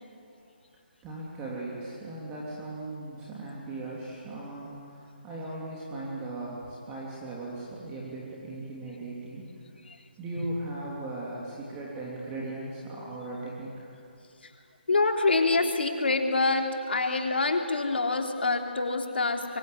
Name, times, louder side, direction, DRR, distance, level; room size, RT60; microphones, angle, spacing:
voice 1, 1.0-9.5 10.2-13.9, right 2 dB, 15° right, -5 dB, 3.4 m, -38 dB
voice 2, 14.9-19.6, left 3 dB, 70° left, 4 dB, 3.3 m, -26 dB
24.0 x 22.5 x 9.8 m, 2.5 s
figure-of-eight pair, 155°, 6 cm